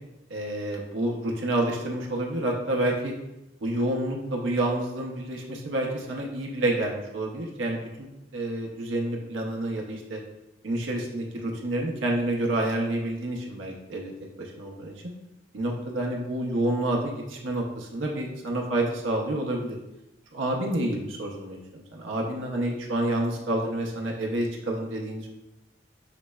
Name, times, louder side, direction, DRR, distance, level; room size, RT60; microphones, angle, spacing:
voice 1, 0.3-3.1 3.6-8.1 8.3-10.2 10.6-14.1 14.4-14.9 15.5-19.8 20.3-25.3, right 1 dB, 85° right, 0 dB, 0.6 m, -29 dB
5.8 x 3.1 x 2.2 m, 0.95 s
head